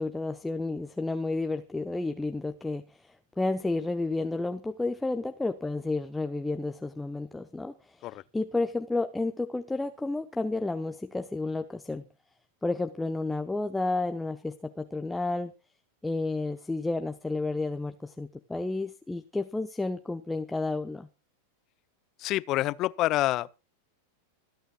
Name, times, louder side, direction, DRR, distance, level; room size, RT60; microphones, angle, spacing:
voice 1, 0.0-8.1 8.3-12.0 12.6-15.5 16.0-21.1, left 2 dB, 5° left, 0.9 m, -31 dB
voice 2, 22.2-23.5, left 16 dB, 35° left, 0.7 m, -27 dB
26.0 x 9.0 x 2.3 m
figure-of-eight pair, 90°, 0 cm